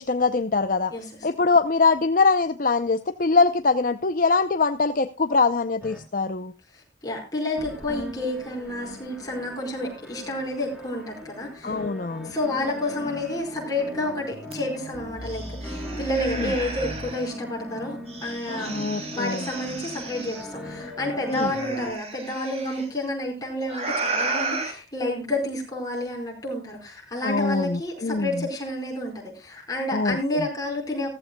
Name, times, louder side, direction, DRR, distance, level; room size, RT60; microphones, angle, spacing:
voice 1, 0.0-0.9 1.2-6.5 11.6-12.3 16.2-16.5 18.7-19.4 21.3-21.5 27.2-28.4 29.9-30.2, left 4 dB, 45° left, 10 dB, 0.6 m, -23 dB
voice 2, 0.9-1.3 6.7-11.8 12.2-18.7 19.1-31.1, left 1 dB, 20° left, -1 dB, 4.7 m, -30 dB
sound 1, 5.8-6.0 7.6-21.9, equal, 5° right, 3.8 m, -39 dB
sound 2, 14.5-14.6 14.9-17.3 18.1-20.4 21.3-22.8 23.7-24.7, right 3 dB, 30° right, 2.8 m, -33 dB
16.0 x 14.5 x 2.2 m, 0.27 s
head